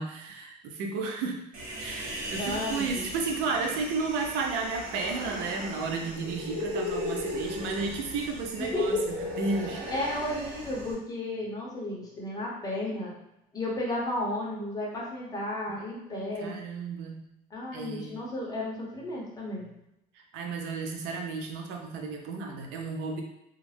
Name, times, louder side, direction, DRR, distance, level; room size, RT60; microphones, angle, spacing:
voice 1, 0.0-1.4 1.8-9.0 9.4-9.8 15.7-17.2 17.7-18.1 20.3-23.2, right 4 dB, 80° right, 2 dB, 0.5 m, -33 dB
Human voice, 1.5-10.9, left 1 dB, 45° right, 1.0 m, -37 dB
voice 2, 2.4-3.0 8.6-9.1 9.9-13.1 13.5-16.6 17.5-19.7, left 1 dB, 20° left, -4 dB, 0.7 m, -33 dB
2.4 x 2.0 x 3.2 m, 0.85 s
cardioid pair, 130°, 19 cm